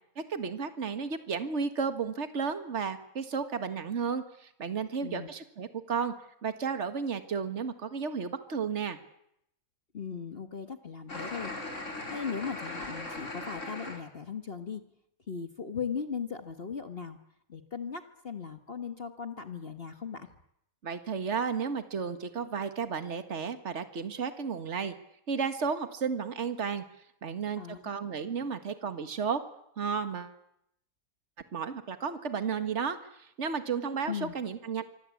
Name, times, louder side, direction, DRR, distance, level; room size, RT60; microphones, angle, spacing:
voice 1, 0.3-6.1 6.4-9.0 20.8-24.9 25.3-26.8 27.2-29.4 29.8-30.3 31.5-34.9, right 6 dB, 55° right, 9 dB, 2.0 m, -33 dB
voice 2, 9.9-11.5 12.1-14.8 15.3-17.2 17.5-20.3 27.6-27.8 34.1-34.3, left 6 dB, 45° left, 8 dB, 1.7 m, -38 dB
sound 1, 11.1-14.0, left 2 dB, 60° left, 5.2 m, -39 dB
25.5 x 25.0 x 8.5 m, 0.77 s
omnidirectional pair, 1.5 m